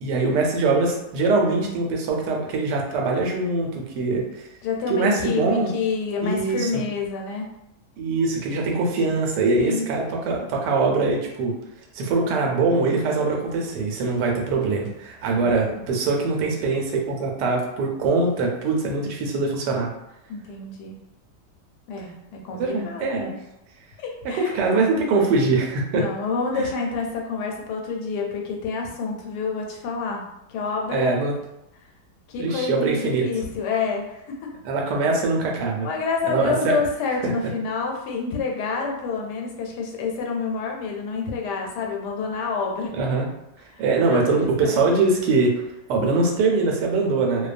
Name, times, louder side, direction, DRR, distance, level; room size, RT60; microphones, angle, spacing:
voice 1, 0.0-4.5 4.9-5.7 6.2-6.8 8.0-11.6 11.9-19.9 22.6-23.3 24.3-26.1 26.6-26.7 30.9-31.3 32.4-33.3 34.6-35.9 36.2-36.8 37.2-37.3 43.0-43.3 43.8-45.5 45.9-47.5, right 3 dB, 85° right, 0 dB, 1.2 m, -22 dB
voice 2, 4.6-7.5 9.6-9.9 15.3-15.5 20.3-21.0 21.9-23.3 24.0-24.7 25.9-30.2 30.5-31.2 32.3-34.5 35.8-42.9 43.7-44.9, left 4 dB, 80° left, 0 dB, 1.2 m, -28 dB
2.6 x 2.2 x 2.4 m, 0.84 s
omnidirectional pair, 1.8 m